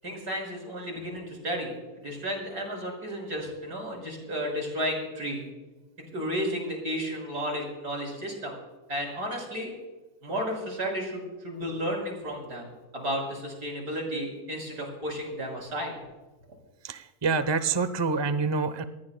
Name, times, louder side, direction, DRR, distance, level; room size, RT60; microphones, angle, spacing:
voice 1, 0.0-5.4 6.1-8.5 8.9-9.7 10.2-12.7 12.9-15.9, equal, 75° right, 0 dB, 6.7 m, -33 dB
voice 2, 16.8-18.8, right 4 dB, 30° right, 11 dB, 0.5 m, -27 dB
27.5 x 19.5 x 2.2 m, 1.2 s
omnidirectional pair, 1.7 m